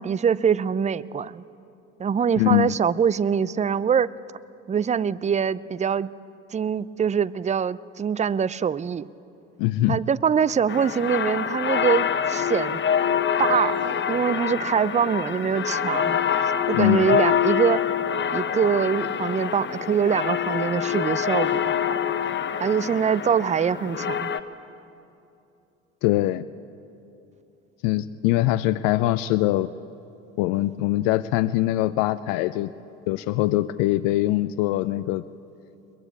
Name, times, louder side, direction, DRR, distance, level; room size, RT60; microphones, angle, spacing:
voice 1, 0.0-1.4 2.0-4.1 4.7-6.1 6.5-9.1 9.9-12.8 13.4-17.8 18.3-22.0 22.6-24.3, right 7 dB, 20° right, 19 dB, 0.6 m, -24 dB
voice 2, 2.4-2.7 9.6-10.0 16.7-17.1 26.0-26.4 27.8-29.7 30.4-32.7 33.1-35.2, left 16 dB, 60° left, 14 dB, 0.6 m, -22 dB
sound 1, 10.7-24.4, left 8 dB, 30° left, 1.2 m, -25 dB
22.0 x 21.5 x 8.5 m, 2.7 s
hypercardioid pair, 60°, 37 cm